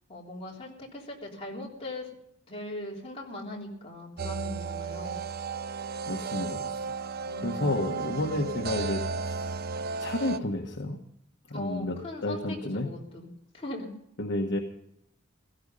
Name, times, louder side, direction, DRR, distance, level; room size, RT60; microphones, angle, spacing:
voice 1, 0.1-2.1 2.5-5.2 7.3-7.8 11.5-13.3 13.5-13.9, left 2 dB, 30° left, -2 dB, 3.5 m, -39 dB
sound 1, 4.2-10.4, right 5 dB, 50° right, 0.6 m, -34 dB
voice 2, 6.1-6.7 7.4-9.5 10.0-11.0 11.5-12.9 14.2-14.6, left 1 dB, 60° left, 2 dB, 1.3 m, -31 dB
16.5 x 14.5 x 5.5 m, 0.74 s
head